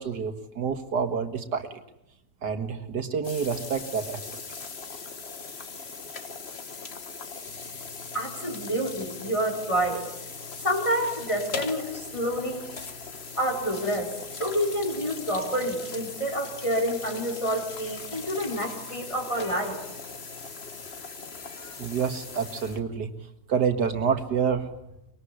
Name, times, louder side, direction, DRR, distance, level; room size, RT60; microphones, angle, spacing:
voice 1, 0.0-1.8 2.4-4.2 21.8-23.1 23.5-24.7, right 6 dB, 80° right, 6 dB, 2.3 m, -28 dB
sound 1, 3.2-22.8, left 4 dB, 40° left, 1.7 m, -39 dB
voice 2, 8.1-10.1 10.6-12.6 13.4-19.8, equal, 20° left, 2 dB, 4.7 m, -28 dB
24.5 x 21.5 x 9.9 m, 0.83 s
omnidirectional pair, 1.8 m